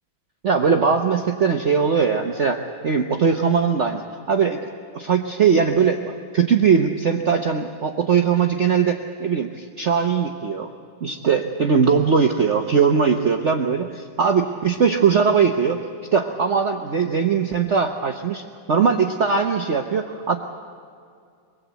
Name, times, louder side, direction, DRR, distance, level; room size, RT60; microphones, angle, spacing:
voice 1, 0.4-10.7 11.0-15.8 16.1-20.4, right 6 dB, 45° right, 4 dB, 1.1 m, -20 dB
23.0 x 20.0 x 8.2 m, 2.2 s
omnidirectional pair, 2.1 m